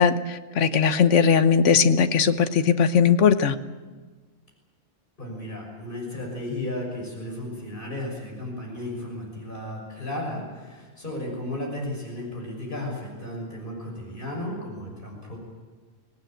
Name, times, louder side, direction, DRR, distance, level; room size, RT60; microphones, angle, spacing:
voice 1, 0.0-3.5, left 6 dB, 70° left, 10 dB, 1.3 m, -19 dB
voice 2, 5.2-15.4, left 1 dB, 40° left, -1 dB, 6.5 m, -34 dB
25.0 x 17.5 x 9.0 m, 1.4 s
omnidirectional pair, 1.3 m